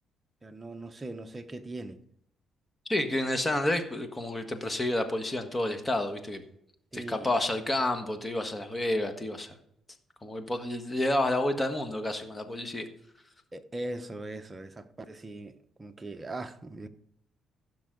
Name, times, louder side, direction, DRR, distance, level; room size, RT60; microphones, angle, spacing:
voice 1, 0.4-2.0 6.9-7.3 13.5-16.9, right 2 dB, 25° right, 0.9 m, -40 dB
voice 2, 2.9-6.4 6.9-9.5 10.2-12.9, left 1 dB, 20° left, 1.5 m, -30 dB
15.0 x 6.2 x 3.9 m
cardioid pair, 90°, 0 cm